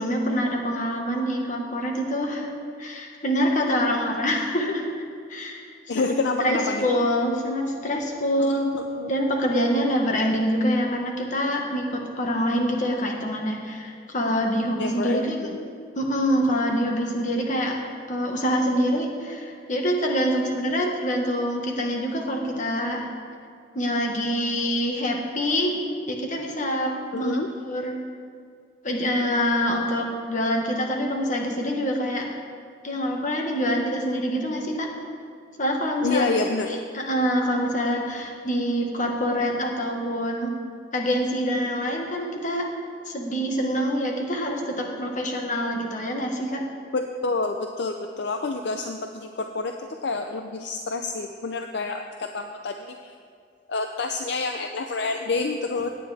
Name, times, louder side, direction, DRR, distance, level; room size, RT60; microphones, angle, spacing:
voice 1, 0.0-2.5 2.8-4.9 5.3-5.6 5.9-6.1 6.4-8.8 9.1-15.5 15.9-17.8 18.1-23.1 23.7-27.4 27.7-28.0 28.8-32.3 32.8-34.9 35.6-36.2 36.7-40.5 40.9-42.7 43.0-46.6, equal, 40° left, 1 dB, 1.5 m, -25 dB
voice 2, 5.9-6.9 8.4-9.1 14.8-15.3 27.1-27.5 36.0-36.7 46.9-53.1 53.7-55.9, left 3 dB, 65° left, 5 dB, 0.5 m, -28 dB
17.0 x 9.4 x 3.5 m, 2.3 s
head